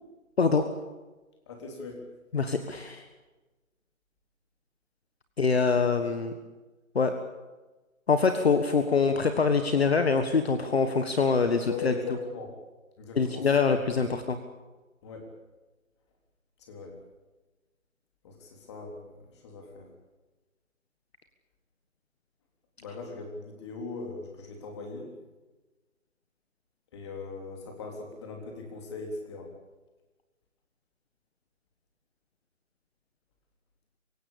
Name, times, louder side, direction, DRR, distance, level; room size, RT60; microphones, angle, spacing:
voice 1, 1.5-2.1 11.7-12.5 13.0-13.8 15.0-15.3 16.6-17.0 18.2-19.9 22.8-25.1 26.9-29.5, left 4 dB, 20° left, 2 dB, 3.6 m, -40 dB
voice 2, 2.3-3.0 5.4-6.3 6.9-7.1 8.1-11.9 13.1-14.4, left 5 dB, 50° left, 8 dB, 1.6 m, -24 dB
25.0 x 16.5 x 8.6 m, 1.2 s
figure-of-eight pair, 165°, 41 cm